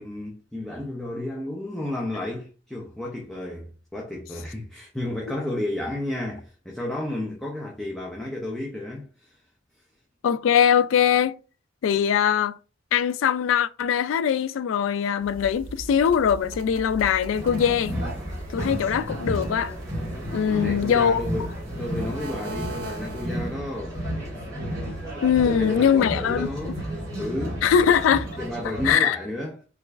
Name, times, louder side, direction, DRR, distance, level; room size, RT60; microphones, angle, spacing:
voice 1, 0.0-9.3 20.5-21.5 21.8-24.0 25.4-26.8 27.2-27.6 28.4-29.6, left 1 dB, ahead, 0.5 m, -32 dB
voice 2, 10.2-11.4 11.8-12.6 12.9-17.9 18.5-19.7 20.3-21.2 24.9-25.0 25.2-26.8 27.6-28.3 28.8-29.2, left 8 dB, 85° left, 0.3 m, -21 dB
sound 1, 15.2-23.6, right 2 dB, 80° right, 0.6 m, -40 dB
sound 2, 17.3-28.9, equal, 20° right, 1.3 m, -32 dB
3.0 x 2.4 x 3.3 m
head